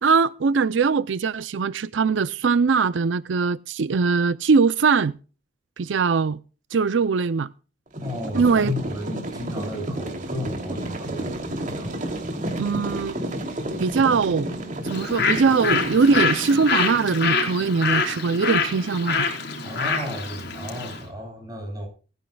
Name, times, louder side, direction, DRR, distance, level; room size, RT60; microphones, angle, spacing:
voice 1, 0.0-5.1 5.8-6.4 6.7-7.5 8.3-8.7 12.6-13.1 13.8-14.5 14.8-19.3, right 5 dB, 85° right, 0.5 m, -21 dB
sound 1, 7.9-17.0, right 1 dB, 45° right, 2.8 m, -31 dB
voice 2, 8.0-11.9 19.6-21.9, left 1 dB, 20° right, 7.5 m, -34 dB
Bird, 14.9-21.0, left 5 dB, 60° left, 4.2 m, -26 dB
19.5 x 14.5 x 2.3 m
head